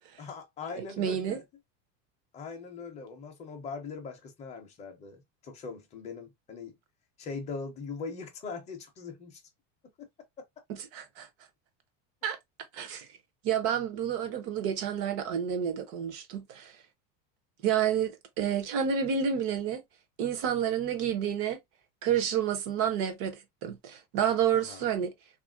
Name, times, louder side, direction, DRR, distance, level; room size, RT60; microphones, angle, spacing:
voice 1, 0.2-1.4 2.3-6.8 7.2-9.4 10.0-10.1 24.5-24.8, left 4 dB, 20° left, 0.6 m, -41 dB
voice 2, 0.7-1.4 10.7-11.3 12.2-12.4 12.7-13.1 13.4-16.7 17.6-19.8 20.2-21.6 22.0-23.4 23.6-25.1, right 8 dB, 40° right, 0.6 m, -29 dB
3.2 x 2.5 x 2.2 m
cardioid pair, 170°, 38 cm